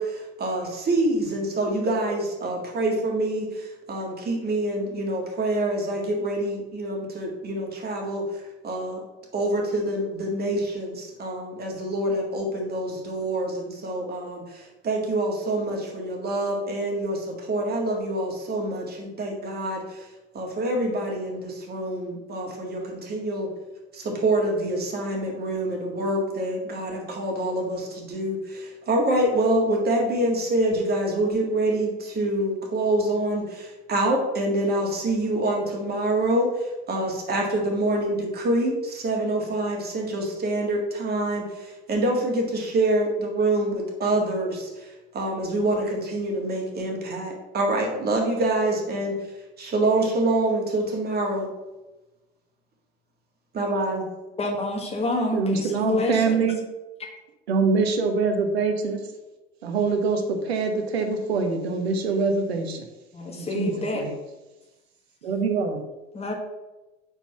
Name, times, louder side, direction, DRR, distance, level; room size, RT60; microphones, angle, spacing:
voice 1, 0.0-8.2 8.6-9.0 9.3-20.1 20.3-23.5 23.9-44.9 45.1-49.1 49.6-51.5 53.6-54.0, right 1 dB, 30° right, 0 dB, 1.8 m, -26 dB
voice 2, 54.4-56.5 63.1-64.0 66.1-66.3, left 2 dB, 20° left, 0 dB, 1.4 m, -27 dB
voice 3, 55.3-56.6 57.5-59.0 59.6-62.9 63.4-64.1 65.2-65.8, right 4 dB, 80° right, 5 dB, 0.9 m, -24 dB
4.6 x 4.1 x 5.5 m, 1.1 s
hypercardioid pair, 75°, 31 cm